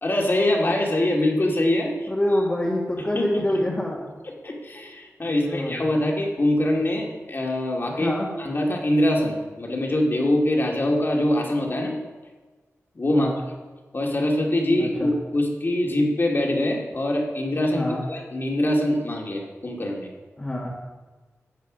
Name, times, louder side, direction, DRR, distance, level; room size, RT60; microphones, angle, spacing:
voice 1, 0.0-2.1 3.1-3.4 4.4-12.0 12.9-13.3 13.9-20.1, left 1 dB, 45° left, 0 dB, 2.4 m, -23 dB
voice 2, 2.1-4.1 5.3-5.8 7.9-8.3 13.1-13.4 14.8-15.1 17.7-18.0 20.4-20.8, left 1 dB, 20° left, -4 dB, 1.9 m, -26 dB
14.0 x 8.2 x 5.2 m, 1.3 s
wide cardioid pair, 75°, 5 cm